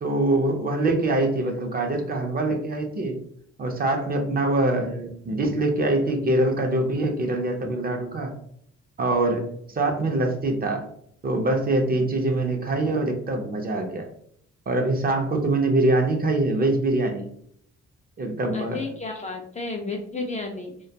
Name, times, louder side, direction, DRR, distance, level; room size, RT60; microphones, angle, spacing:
voice 1, 0.0-3.1 3.6-8.3 9.0-9.4 9.7-10.8 11.2-14.1 14.7-17.3 18.2-18.8, right 2 dB, 30° right, 4 dB, 0.5 m, -24 dB
voice 2, 18.5-20.9, left 3 dB, 25° left, 1 dB, 0.4 m, -32 dB
2.2 x 2.2 x 2.7 m, 0.66 s
cardioid pair, 90°, 30 cm